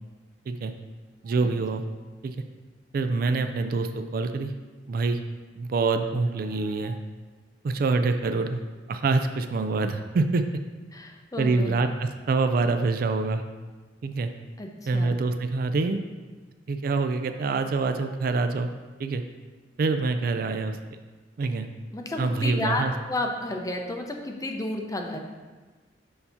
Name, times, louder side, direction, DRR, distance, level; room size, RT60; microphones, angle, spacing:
voice 1, 1.2-1.8 2.2-2.4 2.9-4.5 4.9-5.2 5.6-7.0 7.6-8.6 8.9-10.4 11.4-13.4 14.0-14.3 14.9-16.0 16.7-18.7 19.0-19.2 19.8-20.8 21.4-21.7 22.2-22.9, right 3 dB, 50° right, 7 dB, 0.3 m, -25 dB
voice 2, 10.9-11.8 14.6-15.2 21.9-25.2, left 2 dB, 20° left, 2 dB, 0.5 m, -31 dB
6.6 x 2.8 x 5.7 m, 1.3 s
head